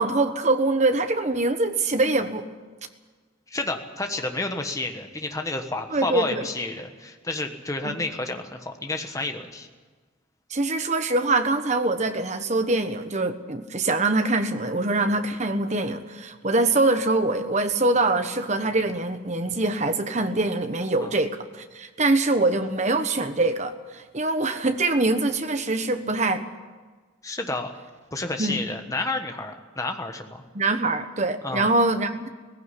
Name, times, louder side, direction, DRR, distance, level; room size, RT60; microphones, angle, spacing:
voice 1, 0.0-2.5 5.9-6.4 7.8-8.0 10.5-26.4 28.4-28.6 30.5-32.3, right 2 dB, 35° right, 8 dB, 1.2 m, -24 dB
voice 2, 3.5-9.7 21.0-21.1 27.2-27.7 28.1-30.4 31.4-31.7, left 2 dB, 15° left, 5 dB, 1.3 m, -30 dB
17.5 x 15.5 x 9.9 m, 1.4 s
head